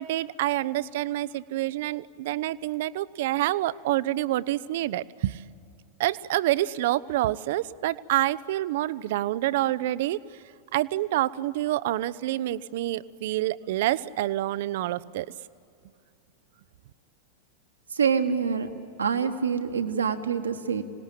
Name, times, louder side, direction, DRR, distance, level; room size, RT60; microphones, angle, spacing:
voice 1, 0.0-5.4 6.0-10.2 10.7-15.3, right 15 dB, 55° right, 18 dB, 0.6 m, -27 dB
voice 2, 17.9-18.7 19.0-20.8, right 6 dB, 70° right, 6 dB, 1.5 m, -26 dB
26.0 x 19.0 x 8.9 m, 2.5 s
figure-of-eight pair, 90°, 0 cm